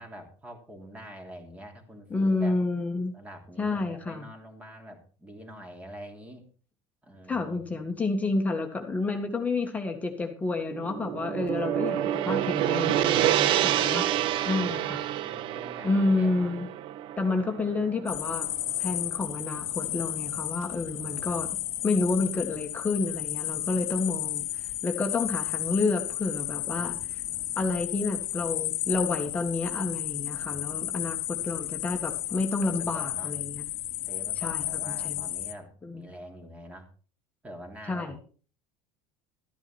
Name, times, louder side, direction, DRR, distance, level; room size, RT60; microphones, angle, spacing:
voice 1, 0.0-2.6 3.1-6.4 7.0-7.9 13.5-16.5 17.5-17.6 20.9-22.1 26.7-27.7 30.3-31.1 32.6-33.3 34.0-36.9 37.4-38.2, equal, 10° right, 3 dB, 3.1 m, -46 dB
voice 2, 2.1-3.1 3.6-4.3 7.3-14.0 14.5-14.8 15.8-16.7 17.2-18.5 18.8-21.6 21.8-24.5 24.8-27.2 27.6-33.6 34.4-35.3 35.8-36.0 37.9-38.2, left 3 dB, 15° left, 3 dB, 1.8 m, -29 dB
Gong, 10.7-19.0, right 12 dB, 50° right, 0.7 m, -28 dB
sound 1, 18.1-35.5, left 15 dB, 55° left, 1.4 m, -33 dB
13.5 x 9.7 x 4.4 m, 0.40 s
supercardioid pair, 135°, 11 cm